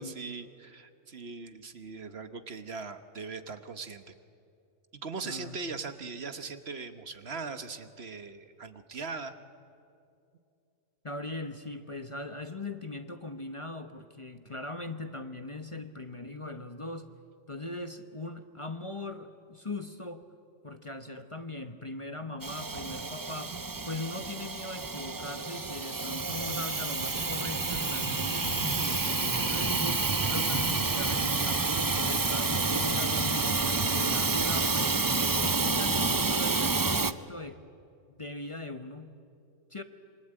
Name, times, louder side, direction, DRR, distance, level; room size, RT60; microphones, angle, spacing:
voice 1, 0.0-4.1 4.9-9.3, right 4 dB, 55° right, 9 dB, 1.4 m, -40 dB
voice 2, 5.2-5.6 11.0-17.1 17.5-20.2 20.6-35.0 35.4-37.6 38.1-39.2 39.7-39.8, left 2 dB, 25° left, 8 dB, 1.0 m, -40 dB
Hiss / Toilet flush / Trickle dribble, 22.4-37.1, right 3 dB, 25° right, 0.5 m, -29 dB
27.5 x 24.0 x 8.9 m, 2.5 s
omnidirectional pair, 1.3 m